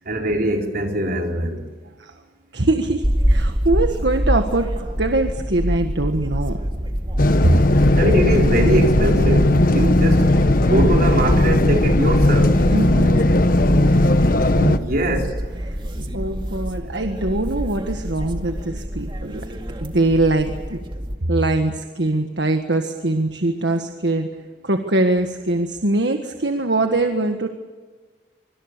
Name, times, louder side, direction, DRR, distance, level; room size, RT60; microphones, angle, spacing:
voice 1, 0.0-1.7 8.0-10.3 10.6-12.6 14.7-15.4, right 1 dB, 55° right, 4.4 m, -22 dB
voice 2, 2.5-6.6 7.4-7.6 12.7-13.3 14.6-14.7 15.7-19.5 19.8-20.8 21.3-24.3 24.6-27.5, right 2 dB, 70° right, 1.6 m, -22 dB
sound 1, 3.0-21.2, equal, 30° right, 2.2 m, -25 dB
sound 2, 7.2-14.8, left 1 dB, 50° left, 1.2 m, -17 dB
25.5 x 25.0 x 6.8 m
head